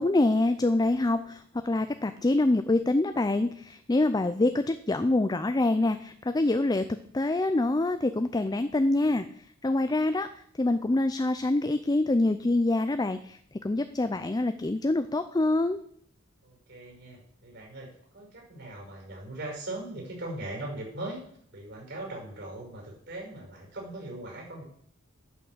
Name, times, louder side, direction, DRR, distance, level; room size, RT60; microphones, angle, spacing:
voice 1, 0.0-6.8 7.1-9.2 9.6-10.3 10.6-13.4 13.6-15.8, left 2 dB, 20° left, 10 dB, 0.4 m, -25 dB
voice 2, 16.4-21.2 21.5-24.6, right 1 dB, 60° right, -1 dB, 5.8 m, -40 dB
11.0 x 6.0 x 7.9 m, 0.64 s
head